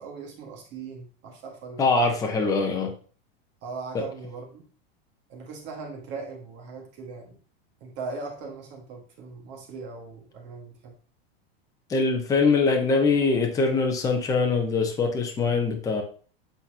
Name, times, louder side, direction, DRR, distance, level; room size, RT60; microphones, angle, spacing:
voice 1, 0.0-1.9 3.6-4.6 5.3-7.4 7.8-10.9, right 4 dB, 35° right, 1 dB, 1.5 m, -39 dB
voice 2, 1.8-2.9 3.9-4.0 11.9-16.0, left 4 dB, 10° left, 2 dB, 0.7 m, -23 dB
8.1 x 4.2 x 2.8 m, 0.40 s
supercardioid pair, 160°, 31 cm